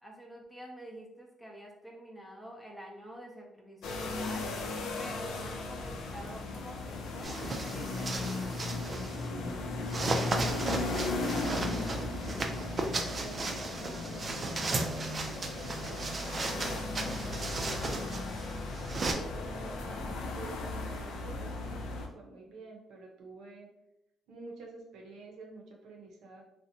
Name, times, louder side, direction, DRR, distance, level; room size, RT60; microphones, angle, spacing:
voice 1, 0.0-4.5 5.0-8.8, equal, 10° left, -1 dB, 0.6 m, -47 dB
sound 1, 3.8-22.1, left 2 dB, 80° left, 0.4 m, -36 dB
sound 2, 7.2-9.3 9.9-19.1, right 3 dB, 40° right, 0.4 m, -36 dB
voice 2, 10.2-15.6 15.8-18.5 18.8-23.7 24.3-26.4, right 3 dB, 85° right, 0 dB, 0.6 m, -50 dB
2.6 x 2.1 x 2.7 m, 0.86 s
cardioid pair, 90°, 0 cm